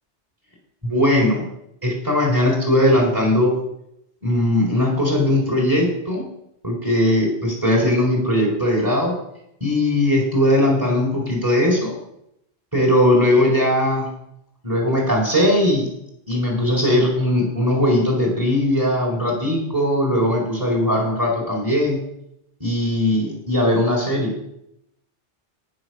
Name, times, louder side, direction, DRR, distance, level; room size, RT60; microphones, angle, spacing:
voice 1, 0.8-1.4 1.8-3.5 4.2-6.2 6.6-9.1 9.6-11.9 12.7-14.1 14.6-15.9 16.3-22.0 22.6-24.3, left 1 dB, 15° right, -1 dB, 4.1 m, -19 dB
16.5 x 6.4 x 5.9 m, 0.79 s
omnidirectional pair, 1.2 m